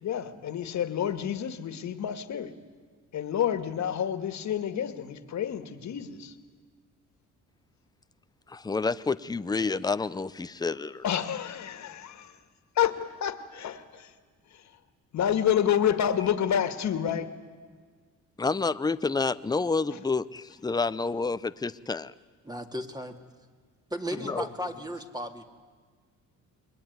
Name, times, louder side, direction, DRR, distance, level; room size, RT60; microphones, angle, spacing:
voice 1, 0.0-2.5 3.1-6.3 11.0-12.3 12.8-14.1 14.5-14.6 15.1-17.3 19.9-20.0 24.2-24.3, left 9 dB, 65° left, 10 dB, 2.1 m, -29 dB
voice 2, 8.5-11.0 18.4-22.1 24.2-24.5, left 4 dB, 15° left, 14 dB, 0.7 m, -29 dB
voice 3, 22.4-23.2 23.9-25.4, equal, 15° right, 5 dB, 2.5 m, -35 dB
28.5 x 21.5 x 9.6 m, 1.5 s
cardioid pair, 90°, 30 cm